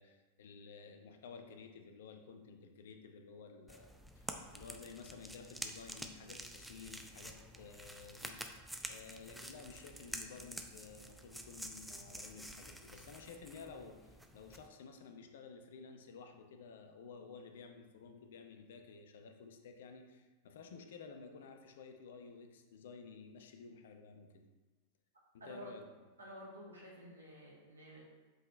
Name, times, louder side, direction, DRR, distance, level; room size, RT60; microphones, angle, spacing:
voice 1, 0.0-8.5 8.8-24.4 25.3-25.8, left 5 dB, 60° left, 5 dB, 0.8 m, -53 dB
sound 1, 3.7-14.7, right 1 dB, ahead, 0.6 m, -49 dB
voice 2, 25.4-25.7 26.2-28.0, right 1 dB, 75° right, -4 dB, 2.0 m, -51 dB
7.9 x 5.3 x 3.1 m, 1.2 s
figure-of-eight pair, 90°, 0 cm